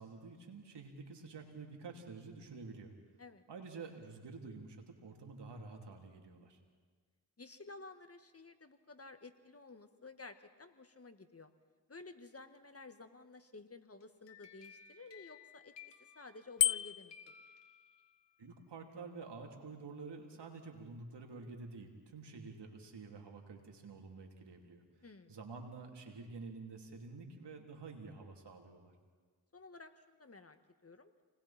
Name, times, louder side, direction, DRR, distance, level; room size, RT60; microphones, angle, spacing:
voice 1, 0.0-2.9 3.5-6.6 18.4-24.8 25.3-28.9, right 4 dB, 75° right, 2 dB, 3.3 m, -49 dB
voice 2, 7.4-11.5 11.9-15.7 16.2-17.3 25.0-25.4 29.5-31.1, left 3 dB, 35° left, 8 dB, 1.8 m, -53 dB
sound 1, 14.0-16.8 17.1-18.4, left 7 dB, 80° left, 2.2 m, -58 dB
Bicycle bell, 16.6-17.2, left 11 dB, 50° left, 0.5 m, -31 dB
29.5 x 20.5 x 4.4 m, 1.5 s
cardioid pair, 45°, 42 cm